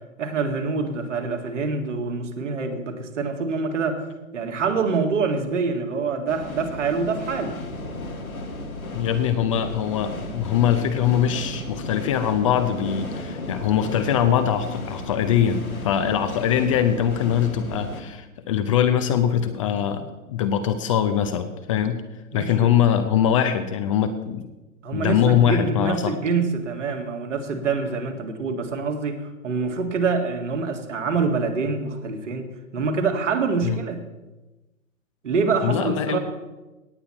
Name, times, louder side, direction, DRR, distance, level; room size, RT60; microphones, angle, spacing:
voice 1, 0.2-4.0 4.3-7.6 22.3-22.7 24.8-32.5 32.7-34.0 35.2-36.2, right 4 dB, 60° right, 4 dB, 2.0 m, -25 dB
sound 1, 6.3-18.0, left 2 dB, 85° left, 2.0 m, -34 dB
voice 2, 8.9-22.0 22.3-24.5 24.9-26.1 33.6-33.8 35.6-36.2, left 9 dB, 25° left, 9 dB, 0.5 m, -22 dB
18.0 x 8.3 x 4.4 m, 1.1 s
figure-of-eight pair, 120°, 41 cm